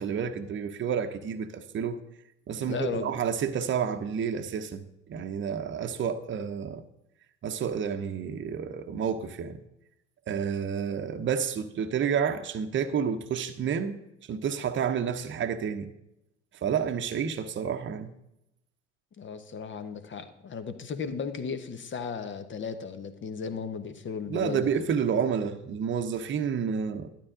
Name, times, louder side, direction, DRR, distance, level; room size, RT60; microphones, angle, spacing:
voice 1, 0.0-2.0 2.5-6.8 7.4-9.6 10.3-14.0 14.3-15.9 16.6-18.1 24.3-27.1, right 7 dB, 35° right, 0.9 m, -30 dB
voice 2, 2.6-3.1 19.2-24.9, left 6 dB, 35° left, 1.1 m, -35 dB
12.0 x 10.0 x 3.8 m
figure-of-eight pair, 55°, 34 cm